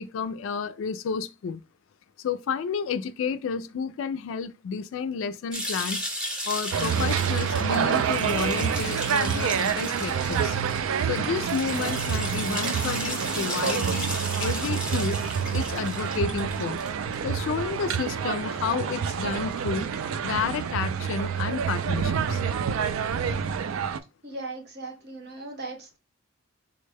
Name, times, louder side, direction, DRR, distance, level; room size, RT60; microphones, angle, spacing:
voice 1, 0.0-1.6 2.2-6.1 6.5-10.6 11.1-15.2 15.5-16.8 17.2-19.9 20.2-22.4, left 6 dB, 70° left, 0.3 m, -31 dB
sound 1, 5.5-17.1, equal, 5° right, 0.6 m, -35 dB
sound 2, 6.7-24.0, right 7 dB, 75° right, 0.3 m, -27 dB
voice 2, 24.2-26.0, right 2 dB, 50° right, 0.8 m, -38 dB
3.8 x 2.1 x 3.3 m
head